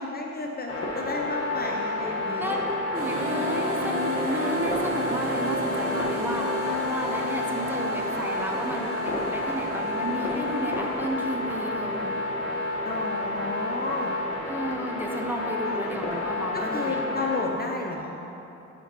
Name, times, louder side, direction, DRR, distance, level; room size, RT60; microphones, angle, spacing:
voice 1, 0.0-2.6 12.9-14.1 15.7-16.0 16.5-18.1, left 3 dB, 30° left, 0 dB, 0.6 m, -32 dB
sound 1, 0.7-17.4, left 2 dB, 50° left, 1.5 m, -30 dB
voice 2, 2.9-12.1 14.5-17.0, right 1 dB, 5° right, 0 dB, 0.8 m, -32 dB
sound 2, 2.9-13.3, equal, 50° right, 1.5 m, -33 dB
11.0 x 5.1 x 3.0 m, 2.9 s
cardioid pair, 90°, 30 cm